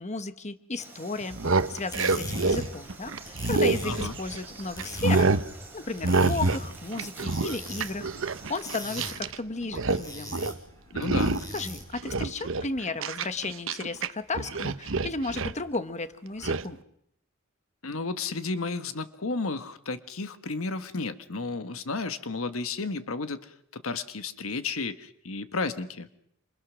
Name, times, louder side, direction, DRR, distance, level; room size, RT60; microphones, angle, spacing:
voice 1, 0.0-5.4 5.7-8.1 8.5-10.4 11.5-16.8, left 3 dB, 35° left, 11 dB, 1.2 m, -34 dB
Frog, 0.8-9.0, right 3 dB, 10° right, 5.9 m, -48 dB
sound 1, 1.2-4.4 4.8-5.5 6.0-6.7 6.9-9.4 9.6-10.0 10.3-10.6 11.0-11.6 12.0-14.1 14.3-15.6 16.4-16.6, right 3 dB, 70° right, 1.0 m, -27 dB
sound 2, 1.7-12.0, equal, 20° left, 6.0 m, -41 dB
voice 2, 3.8-4.2 10.9-11.4 17.8-26.1, left 3 dB, 85° left, 10 dB, 1.3 m, -33 dB
28.0 x 27.0 x 6.3 m, 0.72 s
head